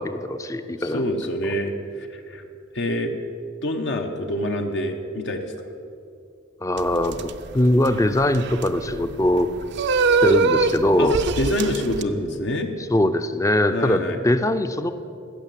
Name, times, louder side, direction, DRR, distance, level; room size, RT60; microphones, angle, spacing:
voice 1, 0.0-1.0 6.6-9.5 10.2-11.2 12.0-12.3 12.9-14.9, left 1 dB, 15° left, 10 dB, 0.5 m, -21 dB
voice 2, 0.8-2.4 2.7-3.2 3.6-5.7 11.0-11.1 11.4-12.7 13.7-14.2, left 1 dB, 65° left, 4 dB, 0.9 m, -26 dB
sound 1, 6.8-12.0, right 4 dB, 60° right, 0.5 m, -23 dB
15.5 x 6.5 x 7.6 m, 2.6 s
head